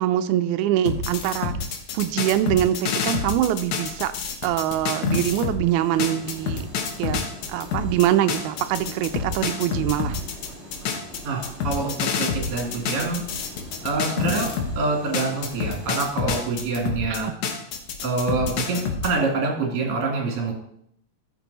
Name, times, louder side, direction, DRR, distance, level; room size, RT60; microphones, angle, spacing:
voice 1, 0.0-1.6 1.9-4.1 4.4-6.6 7.0-7.2 7.5-10.2 17.2-17.3, right 12 dB, 90° right, 10 dB, 2.0 m, -23 dB
sound 1, 0.9-5.6 6.0-14.8 15.1-19.1, left 5 dB, 80° left, 2.5 m, -28 dB
sound 2, 5.6-16.1, equal, 25° right, 2.6 m, -43 dB
voice 2, 11.2-13.2 13.8-14.5 14.7-17.3 18.0-20.5, right 3 dB, 55° right, 0 dB, 3.1 m, -26 dB
13.5 x 6.0 x 4.1 m, 0.72 s
omnidirectional pair, 3.4 m